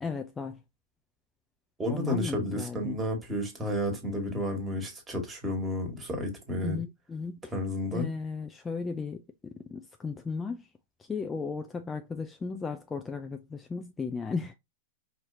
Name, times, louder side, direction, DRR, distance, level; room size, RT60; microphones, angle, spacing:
voice 1, 0.0-0.6 1.9-3.0 6.6-7.5 7.9-10.6 11.1-14.5, left 4 dB, 15° left, 0.4 m, -35 dB
voice 2, 1.8-6.8 7.5-8.1, left 1 dB, 15° right, 1.7 m, -31 dB
4.8 x 2.8 x 2.6 m
figure-of-eight pair, 100°, 0 cm